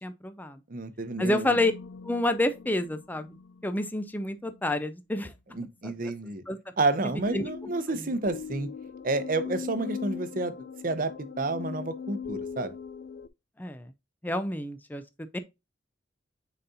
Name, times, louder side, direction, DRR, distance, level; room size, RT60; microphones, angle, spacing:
voice 1, 0.0-0.6 1.2-1.7 2.0-3.3 3.6-5.3 5.8-6.1 6.5-6.6 7.3-8.1 13.6-13.9 14.2-15.4, left 1 dB, 10° left, 0.5 m, -29 dB
voice 2, 0.7-1.6 5.5-6.4 6.8-8.7 9.0-10.5 10.8-11.1 11.4-12.7, right 3 dB, 50° right, 0.8 m, -30 dB
sound 1, 1.5-4.7 7.2-13.3, left 6 dB, 80° left, 0.4 m, -40 dB
9.1 x 4.1 x 2.7 m
head